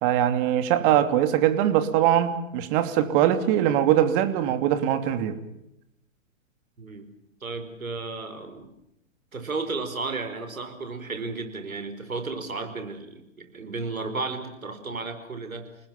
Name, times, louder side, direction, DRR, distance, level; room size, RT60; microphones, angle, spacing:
voice 1, 0.0-5.4, right 11 dB, 40° right, 10 dB, 3.1 m, -22 dB
voice 2, 6.8-7.1 7.4-8.7 9.3-15.7, right 3 dB, 85° right, 8 dB, 4.9 m, -33 dB
30.0 x 19.5 x 7.2 m, 0.82 s
hypercardioid pair, 115°, 40 cm